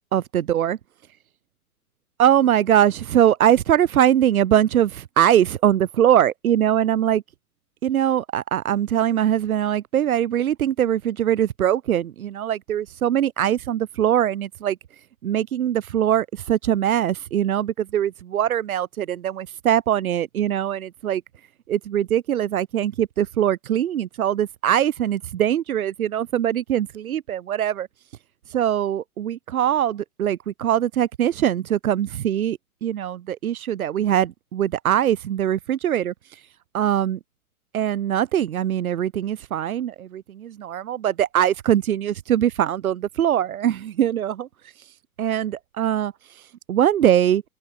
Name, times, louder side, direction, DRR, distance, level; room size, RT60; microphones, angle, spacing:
voice 1, 0.1-0.8 2.2-7.2 7.8-14.8 15.2-21.2 21.7-27.9 28.5-36.1 36.7-37.2 37.7-44.5 45.2-46.1 46.7-47.4, right 10 dB, 70° right, 4.6 m, -22 dB
open air
hypercardioid pair, 115°, 44 cm